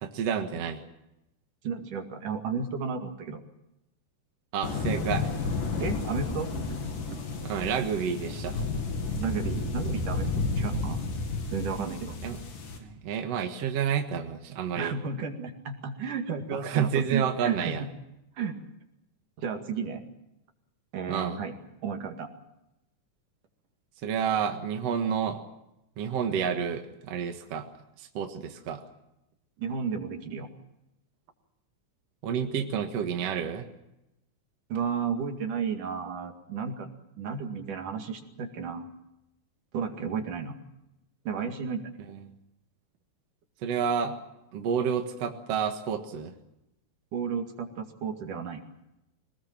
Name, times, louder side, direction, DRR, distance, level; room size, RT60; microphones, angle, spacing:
voice 1, 0.0-0.8 4.5-5.3 7.4-8.6 12.2-12.4 12.8-14.9 16.6-17.8 21.1-21.4 24.0-25.4 26.0-27.7 28.0-28.8 32.2-33.7 42.1-42.3 43.6-44.2 44.5-46.3, right 7 dB, 55° right, 4 dB, 2.5 m, -29 dB
voice 2, 1.6-3.4 5.8-6.8 7.1-7.2 9.2-10.3 10.6-11.0 11.5-12.2 14.8-17.9 18.4-18.6 19.4-20.0 20.9-21.5 21.8-22.3 29.6-30.5 34.7-38.9 39.7-40.6 41.3-41.9 47.1-48.6, right 6 dB, 75° right, 4 dB, 3.7 m, -33 dB
sound 1, 4.6-12.8, left 3 dB, 90° left, 4.8 m, -31 dB
24.5 x 19.5 x 7.4 m, 0.88 s
omnidirectional pair, 3.7 m